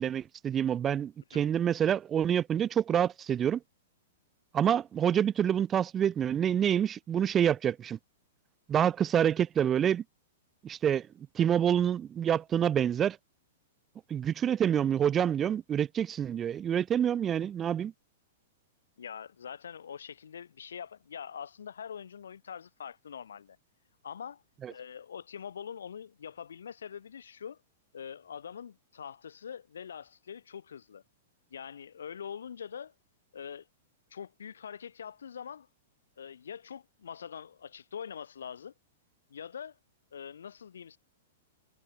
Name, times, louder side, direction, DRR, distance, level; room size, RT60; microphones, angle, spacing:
voice 1, 0.0-3.6 4.5-8.0 8.7-10.0 10.6-11.1 11.3-13.2 14.1-17.9 24.6-24.7, right 9 dB, 25° right, 0.7 m, -27 dB
voice 2, 19.0-23.6 24.0-24.4 24.7-27.6 27.9-31.0 31.5-32.9 33.3-33.7 34.1-35.7 36.2-38.7 39.3-39.8 40.1-41.0, left 7 dB, 70° left, 2.8 m, -43 dB
figure-of-eight pair, 105°, 0 cm